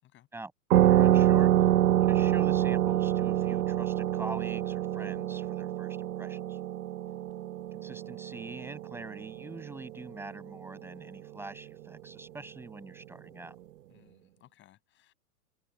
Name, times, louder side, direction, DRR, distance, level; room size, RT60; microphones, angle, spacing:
voice 1, 0.3-6.6 7.7-13.6, right 2 dB, 5° right, 8.0 m, -45 dB
sound 1, 0.7-9.9, right 13 dB, 80° right, 1.0 m, -26 dB
voice 2, 13.9-15.1, left 13 dB, 25° left, 7.2 m, -61 dB
hypercardioid pair, 140°, 46 cm